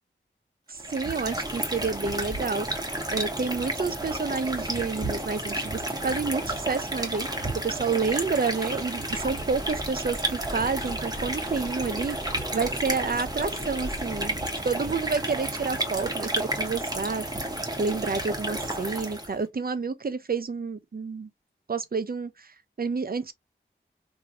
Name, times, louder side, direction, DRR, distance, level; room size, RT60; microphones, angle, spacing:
sound 1, 0.7-19.4, right 1 dB, 20° right, 1.0 m, -31 dB
voice 1, 0.7-2.8 3.1-7.3 7.5-12.2 12.5-14.4 14.6-17.2 17.8-21.3 21.7-23.3, right 4 dB, 45° right, 0.5 m, -29 dB
Bus, 9.1-14.4, equal, 30° left, 1.0 m, -41 dB
3.1 x 2.7 x 2.3 m
wide cardioid pair, 40°, 21 cm